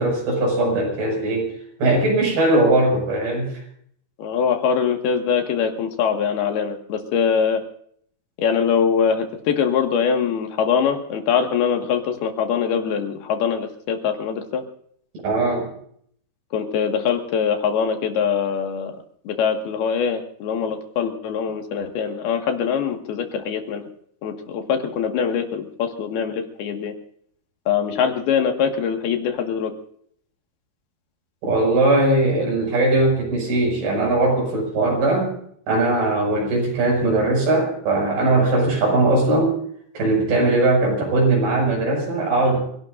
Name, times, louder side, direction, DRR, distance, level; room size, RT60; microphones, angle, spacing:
voice 1, 0.0-1.5 1.8-3.5 15.2-15.7 31.4-35.4 35.7-39.6 39.9-42.6, right 2 dB, 75° right, 0 dB, 8.1 m, -19 dB
voice 2, 4.2-7.6 8.4-14.6 16.5-18.9 19.3-23.9 24.2-26.9 27.7-29.7, left 7 dB, 75° left, 4 dB, 3.8 m, -23 dB
28.5 x 17.5 x 2.6 m, 0.64 s
omnidirectional pair, 4.5 m